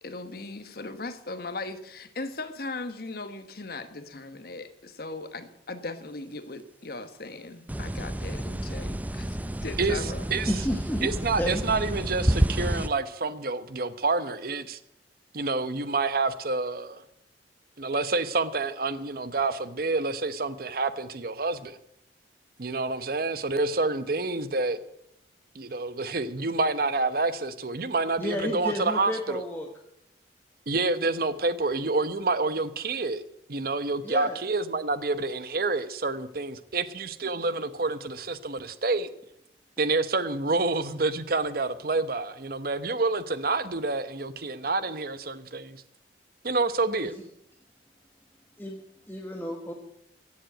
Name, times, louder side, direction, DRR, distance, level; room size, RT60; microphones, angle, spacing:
voice 1, 0.0-10.2, left 2 dB, 55° left, 1.2 m, -38 dB
sound 1, 7.7-12.9, right 1 dB, 10° right, 0.4 m, -29 dB
voice 2, 10.5-11.1 11.4-11.6 28.2-29.7 34.0-34.4 47.0-47.2 48.6-48.8 49.1-49.7, equal, 10° left, 1.4 m, -31 dB
voice 3, 11.0-14.8 15.3-17.0 17.8-21.8 22.6-24.8 25.5-29.4 30.7-33.2 33.5-39.1 39.8-45.8 46.4-47.1, right 3 dB, 55° right, 0.9 m, -28 dB
15.5 x 7.5 x 9.2 m
head